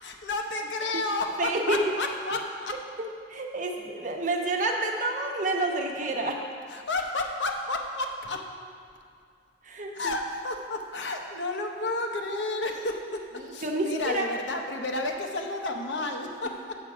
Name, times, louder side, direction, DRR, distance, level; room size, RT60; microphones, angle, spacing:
voice 1, 0.0-2.8 6.7-8.4 9.9-13.3 13.5-16.8, left 2 dB, 85° left, 3 dB, 0.9 m, -31 dB
voice 2, 1.4-1.8 3.3-6.4 9.7-10.1 13.6-14.3, right 2 dB, 45° right, 1 dB, 0.9 m, -29 dB
7.3 x 7.3 x 4.9 m, 2.3 s
head